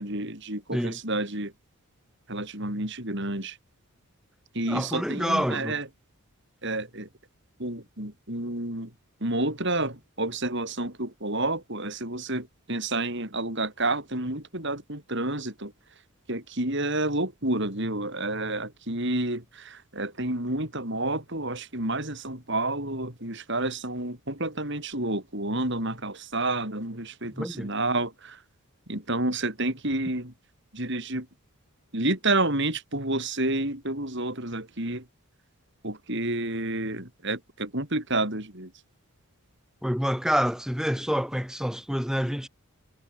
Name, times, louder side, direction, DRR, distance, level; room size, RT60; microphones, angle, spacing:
voice 1, 0.0-1.5 2.3-3.6 4.5-5.9 6.6-7.1 7.6-8.9 9.2-15.7 16.3-28.4 28.9-30.3 30.7-31.3 31.9-35.0 35.8-38.7, right 2 dB, 55° right, 6.8 m, -29 dB
voice 2, 4.7-5.8 27.3-27.7 39.8-42.5, equal, ahead, 6.8 m, -27 dB
head